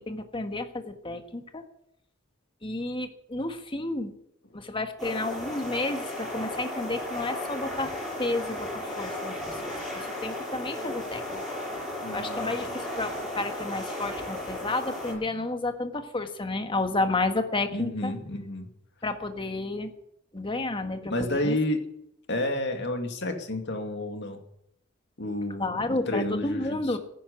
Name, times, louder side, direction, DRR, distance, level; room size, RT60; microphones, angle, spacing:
voice 1, 0.0-1.6 2.6-4.1 4.5-7.9 8.2-11.4 12.1-18.1 19.0-19.9 20.3-21.6 25.6-27.0, left 2 dB, 25° left, 7 dB, 1.5 m, -31 dB
sound 1, 5.0-15.1, left 1 dB, ahead, 7.3 m, -35 dB
voice 2, 12.0-12.6 17.7-18.7 21.1-21.8 22.3-24.4 25.2-27.0, left 1 dB, 55° left, 5 dB, 2.4 m, -30 dB
14.0 x 11.0 x 8.2 m, 0.76 s
head